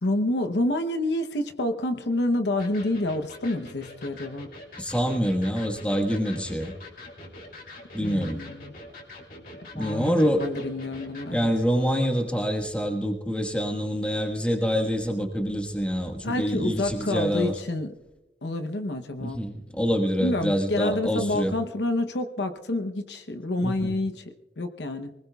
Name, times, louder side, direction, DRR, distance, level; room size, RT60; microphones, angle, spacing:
voice 1, 0.0-4.5 8.0-8.7 9.7-10.1 10.4-11.5 16.2-17.9 18.4-19.4 20.2-25.1, left 1 dB, 80° left, 8 dB, 0.8 m, -28 dB
Electric guitar, 2.6-11.3, left 2 dB, 55° left, 2.7 m, -44 dB
voice 2, 4.8-6.7 7.9-8.4 9.7-10.5 11.3-17.6 19.2-21.5 23.6-24.0, equal, 5° left, 2 dB, 1.4 m, -26 dB
24.5 x 19.5 x 2.3 m, 1.1 s
head